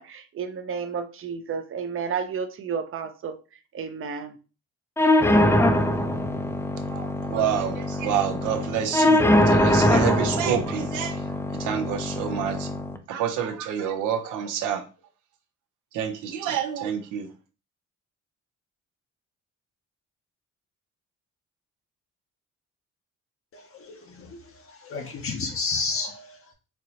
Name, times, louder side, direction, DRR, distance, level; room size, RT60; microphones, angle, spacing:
voice 1, 0.0-3.4 3.7-4.4, right 6 dB, 45° right, 0.5 m, -32 dB
sound 1, 5.0-13.0, left 1 dB, 10° left, 0.4 m, -22 dB
voice 2, 6.9-12.7 13.1-14.9 15.9-17.3, right 8 dB, 90° right, 0.7 m, -28 dB
voice 3, 23.5-24.4 24.7-26.5, left 4 dB, 45° left, 0.6 m, -32 dB
4.3 x 2.0 x 2.7 m
cardioid pair, 90°, 30 cm